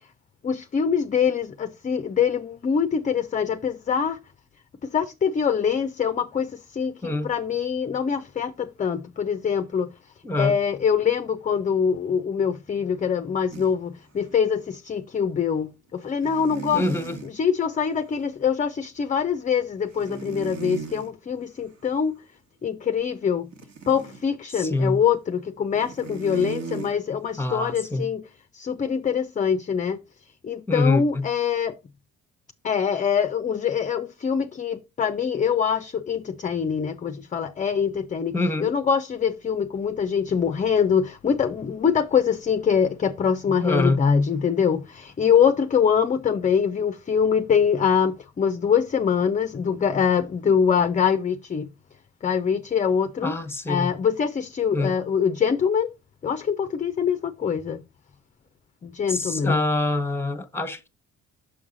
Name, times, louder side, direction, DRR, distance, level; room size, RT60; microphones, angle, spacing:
voice 1, 0.4-4.2 4.8-9.9 10.4-16.8 17.3-22.2 22.6-23.5 23.9-28.2 28.5-30.0 30.4-31.8 32.6-38.3 38.6-51.7 52.2-53.4 53.7-55.9 56.2-57.8 58.8-59.6, left 7 dB, 25° left, 0.5 m, -24 dB
voice 2, 10.2-10.6 16.7-17.2 24.5-25.0 27.4-28.1 30.7-31.3 38.3-38.7 43.5-44.0 53.2-53.9 54.7-54.9 59.1-60.9, left 2 dB, 5° left, 1.0 m, -25 dB
sound 1, 13.5-13.7 14.3-14.4 16.2-17.3 20.0-21.1 23.5-24.2 25.7-27.0, right 6 dB, 60° right, 1.5 m, -36 dB
6.2 x 4.7 x 3.9 m
supercardioid pair, 70°, 31 cm